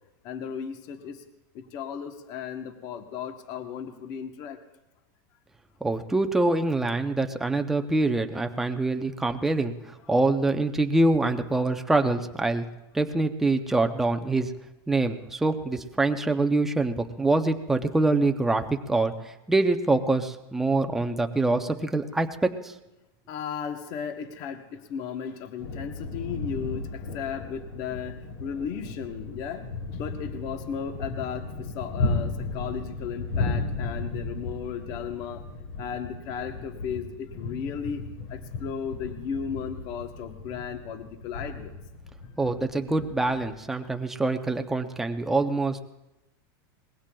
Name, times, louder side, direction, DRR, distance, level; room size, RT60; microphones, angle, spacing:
voice 1, 0.2-1.2 1.5-4.6 23.3-35.4 35.8-38.0 38.3-41.8, left 7 dB, 35° left, 7 dB, 0.9 m, -35 dB
voice 2, 5.8-9.7 10.1-12.7 12.9-14.5 14.9-19.1 19.5-22.7 42.4-45.8, right 2 dB, 5° right, 5 dB, 0.4 m, -25 dB
sound 1, 25.6-43.6, left 3 dB, 80° left, 2.9 m, -35 dB
23.5 x 20.5 x 2.3 m, 0.97 s
supercardioid pair, 175°, 12 cm